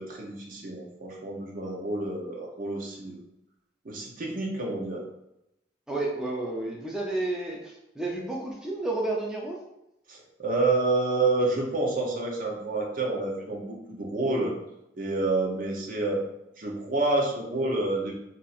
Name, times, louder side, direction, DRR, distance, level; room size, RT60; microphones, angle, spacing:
voice 1, 0.0-3.2 3.8-5.0 10.1-14.5 15.0-16.2 16.6-18.1, right 2 dB, 50° right, 0 dB, 0.7 m, -28 dB
voice 2, 5.9-9.6, right 2 dB, 5° right, -3 dB, 0.4 m, -31 dB
2.6 x 2.5 x 4.1 m, 0.85 s
head